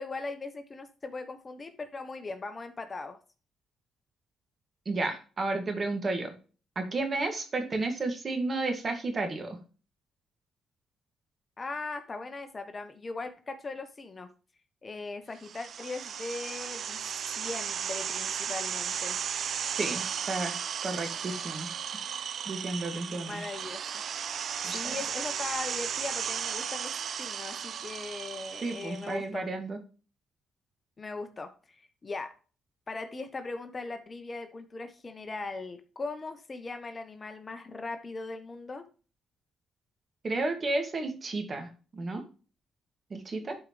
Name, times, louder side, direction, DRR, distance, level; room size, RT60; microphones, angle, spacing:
voice 1, 0.0-3.2 11.6-14.3 14.8-17.0 17.4-19.2 23.1-24.0 24.7-29.5 31.0-32.4 32.9-38.9, left 3 dB, 30° left, 9 dB, 1.0 m, -39 dB
voice 2, 4.9-6.3 6.8-9.6 19.8-21.7 22.5-23.4 24.6-25.0 28.6-29.8 40.2-42.2 43.1-43.6, right 2 dB, 35° right, 6 dB, 2.1 m, -32 dB
sound 1, 15.4-29.2, right 8 dB, 60° right, 0.5 m, -35 dB
11.0 x 4.8 x 3.2 m, 0.36 s
cardioid pair, 90°, 0 cm